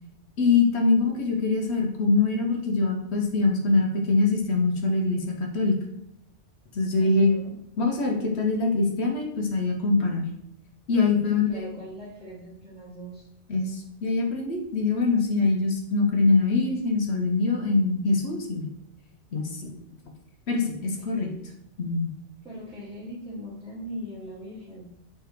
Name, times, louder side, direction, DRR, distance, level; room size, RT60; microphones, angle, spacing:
voice 1, 0.4-5.8 6.7-7.3 7.8-10.3 10.9-11.6 13.5-18.7 19.3-19.8 20.5-21.3 21.8-22.1, left 3 dB, 65° left, 1 dB, 1.0 m, -23 dB
voice 2, 7.0-7.5 11.3-13.2 20.8-21.4 22.4-24.9, equal, 5° right, -11 dB, 1.1 m, -40 dB
3.5 x 3.3 x 4.5 m, 0.78 s
omnidirectional pair, 1.2 m